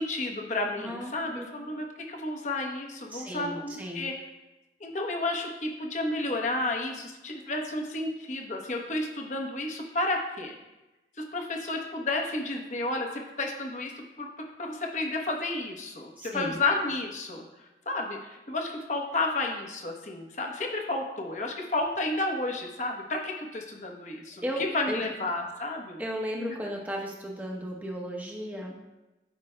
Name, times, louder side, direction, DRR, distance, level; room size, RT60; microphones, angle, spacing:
voice 1, 0.0-4.1 4.8-10.5 11.2-13.9 14.2-17.4 17.9-26.0, left 2 dB, 40° left, 1 dB, 1.0 m, -31 dB
voice 2, 0.8-1.5 3.1-4.1 16.2-16.6 24.4-25.0 26.0-28.8, equal, 10° right, -1 dB, 1.0 m, -35 dB
12.5 x 5.1 x 2.2 m, 1.0 s
head